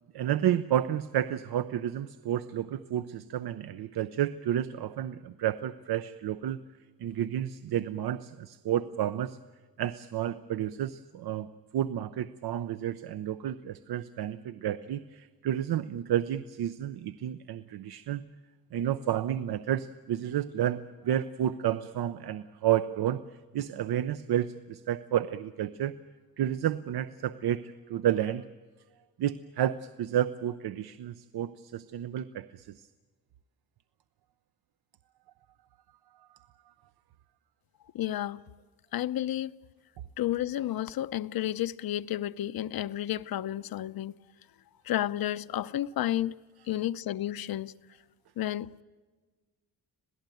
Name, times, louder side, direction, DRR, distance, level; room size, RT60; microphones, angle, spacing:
voice 1, 0.1-6.6 7.0-9.4 9.8-18.2 18.7-26.0 26.4-28.5 29.2-32.8, right 11 dB, 75° right, 0.7 m, -31 dB
voice 2, 37.9-38.4 38.9-39.5 40.2-44.2 44.8-46.3 46.7-47.7 48.4-48.8, left 13 dB, 70° left, 0.7 m, -31 dB
26.5 x 17.5 x 9.2 m
wide cardioid pair, 160°, 38 cm